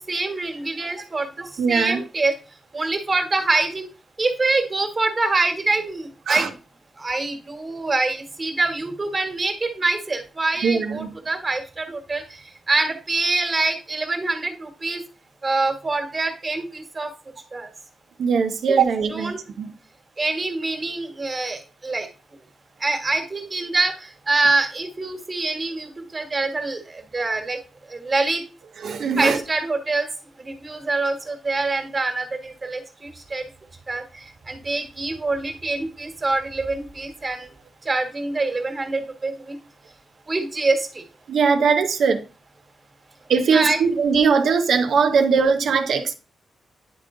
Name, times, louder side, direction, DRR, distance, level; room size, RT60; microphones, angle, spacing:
voice 1, 0.1-2.3 2.7-3.9 4.2-6.5 7.0-12.4 12.7-15.0 15.4-17.1 17.5-17.7 19.1-19.4 20.2-22.1 22.8-27.6 27.9-28.4 29.2-30.1 30.4-33.4 33.9-34.0 34.5-37.5 37.8-39.6 40.3-41.0 43.5-43.8, right 3 dB, 35° right, 1.5 m, -25 dB
voice 2, 1.6-2.0 6.3-6.5 10.6-11.1 18.2-19.7 28.8-29.4 41.3-42.2 43.3-46.1, right 5 dB, 75° right, 0.8 m, -20 dB
9.7 x 3.8 x 3.7 m
cardioid pair, 80°, 0 cm